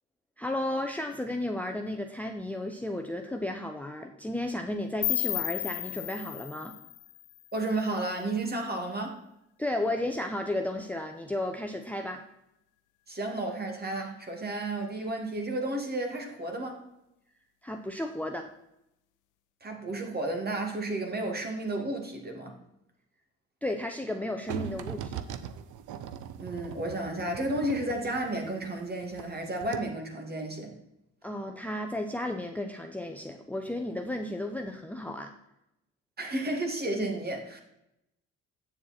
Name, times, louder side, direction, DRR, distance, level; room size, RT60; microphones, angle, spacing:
voice 1, 0.4-6.7 9.6-12.2 17.6-18.5 23.6-25.2 31.2-35.3, left 1 dB, 5° left, 5 dB, 0.7 m, -33 dB
sound 1, 5.0-8.0, left 18 dB, 85° left, 0.5 m, -34 dB
voice 2, 7.5-9.2 13.1-16.8 19.6-22.5 26.4-30.7 36.2-37.6, right 2 dB, 30° right, 2 dB, 2.3 m, -32 dB
sound 2, 24.5-29.3 29.6-29.8, right 9 dB, 85° right, 0.7 m, -39 dB
8.6 x 7.3 x 4.3 m, 0.85 s
cardioid pair, 90°, 30 cm